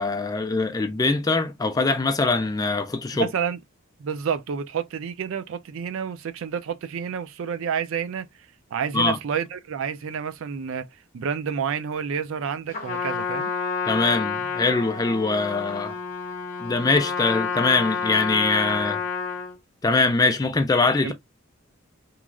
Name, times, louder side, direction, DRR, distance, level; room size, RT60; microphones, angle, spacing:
voice 1, 0.0-3.3 8.9-9.2 13.9-15.9 16.6-19.0 19.8-21.1, left 3 dB, 15° left, 0.3 m, -23 dB
voice 2, 3.1-3.6 4.0-8.3 8.7-10.9 11.1-13.5 21.0-21.1, right 7 dB, 70° right, 0.4 m, -29 dB
Trumpet, 12.7-19.5, left 5 dB, 40° left, 0.7 m, -29 dB
2.9 x 2.3 x 2.3 m
head